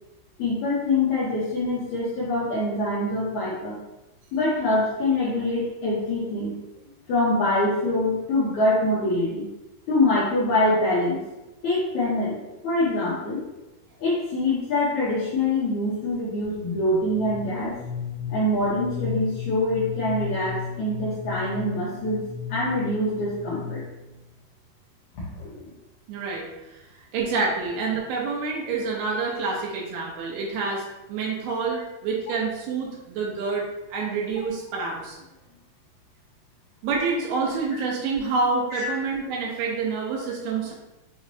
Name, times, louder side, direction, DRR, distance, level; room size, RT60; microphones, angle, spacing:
voice 1, 0.4-3.8 4.3-6.6 7.1-9.5 9.9-11.2 11.6-12.4 12.6-13.4 14.0-17.7 18.3-22.2 22.5-23.8 25.1-25.7 31.7-31.8 38.7-38.9, left 2 dB, 85° left, -8 dB, 1.6 m, -24 dB
sound 1, 16.4-24.1, left 6 dB, 55° right, 1.5 m, -34 dB
voice 2, 26.1-26.8 27.1-33.7 33.9-35.2 36.8-40.7, right 4 dB, 80° right, -2 dB, 2.7 m, -27 dB
6.2 x 3.1 x 2.7 m, 1.0 s
omnidirectional pair, 4.7 m